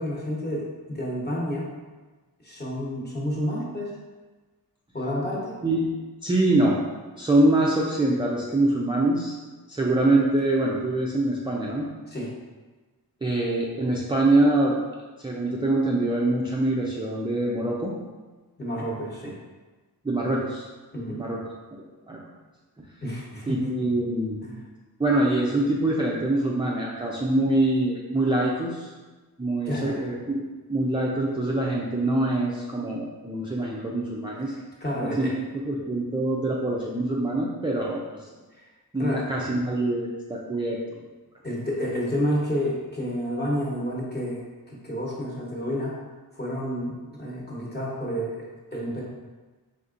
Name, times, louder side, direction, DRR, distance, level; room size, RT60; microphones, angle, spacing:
voice 1, 0.0-1.7 2.4-4.0 4.9-5.6 12.1-12.3 18.6-19.4 20.9-21.3 23.0-23.7 24.4-24.6 29.6-30.0 34.5-35.3 38.5-38.6 39.0-39.3 41.4-44.4 44.7-46.0 46.3-49.0, equal, 25° left, -5 dB, 1.0 m, -30 dB
voice 2, 6.2-6.8 7.2-9.4 9.7-11.9 13.2-14.8 15.2-17.9 20.0-20.6 21.2-21.4 22.1-22.2 23.5-24.4 25.0-28.9 29.4-34.5 35.0-38.3 38.9-41.0, right 2 dB, 15° right, -4 dB, 0.4 m, -24 dB
3.9 x 3.6 x 2.5 m, 1.3 s
wide cardioid pair, 100°, 39 cm